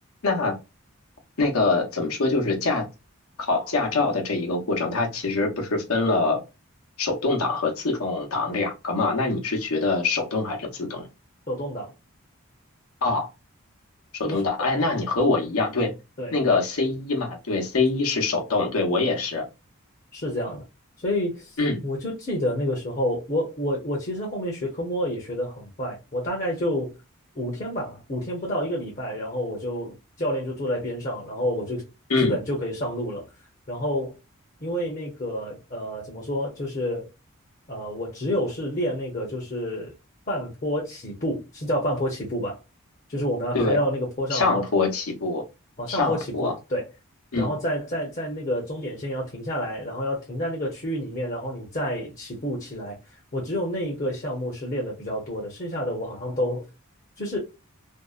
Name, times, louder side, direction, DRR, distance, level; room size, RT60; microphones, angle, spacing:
voice 1, 0.2-0.6 1.4-2.9 3.4-6.4 7.0-11.1 13.0-13.3 14.2-15.9 16.3-19.4 21.6-21.8 32.1-32.3 43.5-43.8 44.3-45.4 45.9-46.6 47.3-47.5, left 3 dB, 85° left, 0.8 m, -24 dB
voice 2, 11.5-11.9 14.3-14.4 16.2-16.3 20.1-20.6 21.0-21.6 21.8-26.9 27.4-31.8 32.2-33.3 33.7-34.1 34.6-37.1 37.7-39.9 40.3-42.6 43.1-44.6 45.8-46.9 47.3-53.0 53.3-56.6 57.2-57.4, equal, 35° left, 0.7 m, -29 dB
2.6 x 2.0 x 2.3 m
head